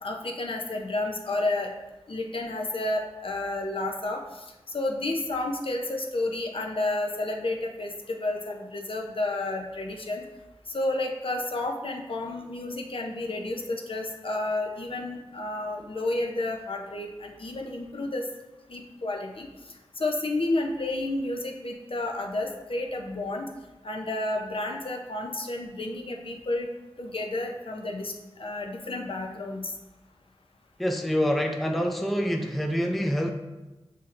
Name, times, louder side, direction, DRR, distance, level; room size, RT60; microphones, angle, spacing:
voice 1, 0.0-1.7 2.1-10.2 10.7-18.3 18.7-19.5 20.0-23.5 23.8-26.7 27.0-29.7, left 2 dB, 60° left, 1 dB, 0.6 m, -31 dB
voice 2, 30.8-33.3, equal, ahead, 4 dB, 0.4 m, -26 dB
6.7 x 2.8 x 2.5 m, 1.1 s
wide cardioid pair, 55°, 11 cm